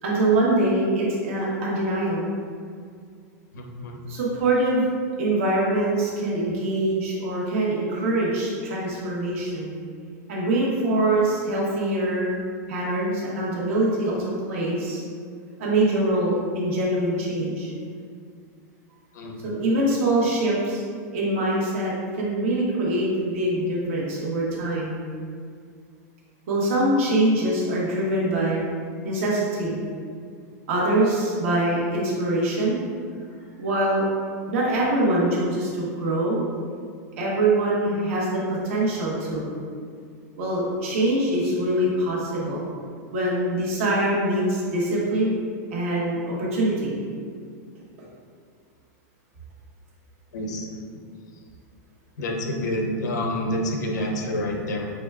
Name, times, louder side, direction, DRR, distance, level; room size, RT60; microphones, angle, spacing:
voice 1, 0.0-2.3 4.1-4.9 5.2-9.7 10.3-12.4 12.7-15.0 15.6-17.7 19.4-20.8 21.1-25.0 26.5-28.6 29.0-29.8 30.7-32.8 33.6-34.0 34.5-36.4 37.2-39.5 40.4-42.6 43.1-45.4 45.7-46.9, right 1 dB, 50° right, -5 dB, 1.2 m, -24 dB
voice 2, 3.5-4.0 19.1-19.6 50.3-51.0 52.2-54.9, left 1 dB, 85° left, 2 dB, 0.8 m, -28 dB
6.1 x 3.2 x 2.4 m, 2.1 s
supercardioid pair, 180°, 9 cm